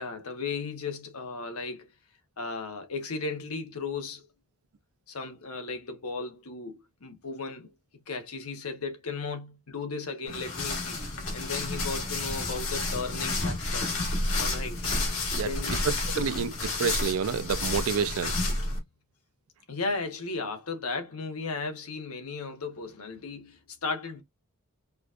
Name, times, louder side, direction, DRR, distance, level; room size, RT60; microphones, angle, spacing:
voice 1, 0.0-1.9 2.4-4.3 5.1-7.7 8.1-11.0 11.3-13.9 14.4-14.8 15.4-16.4 19.7-24.2, left 4 dB, 85° left, 1.1 m, -35 dB
sound 1, 10.3-18.8, left 2 dB, 70° left, 1.6 m, -30 dB
voice 2, 16.2-16.5 16.8-18.4, right 6 dB, 75° right, 0.4 m, -28 dB
4.8 x 2.4 x 2.4 m
head